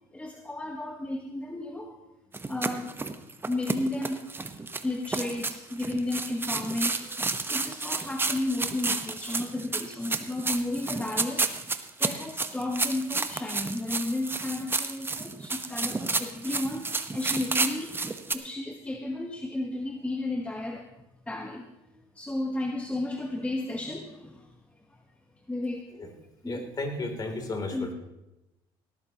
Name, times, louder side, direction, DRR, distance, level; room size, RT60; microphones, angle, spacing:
voice 1, 0.1-2.0 2.4-2.9 3.5-4.2 4.8-11.5 12.0-18.0 18.3-20.9 21.3-21.7 22.1-24.5 24.9-25.0 25.5-25.8 26.4-26.6 27.7-27.9, left 2 dB, 10° left, 3 dB, 1.2 m, -33 dB
sound 1, 2.3-18.3, right 3 dB, 20° right, 1.0 m, -31 dB
voice 2, 26.4-27.9, left 2 dB, 30° left, 3 dB, 3.1 m, -33 dB
18.5 x 13.5 x 3.0 m, 0.94 s
supercardioid pair, 75°, 12 cm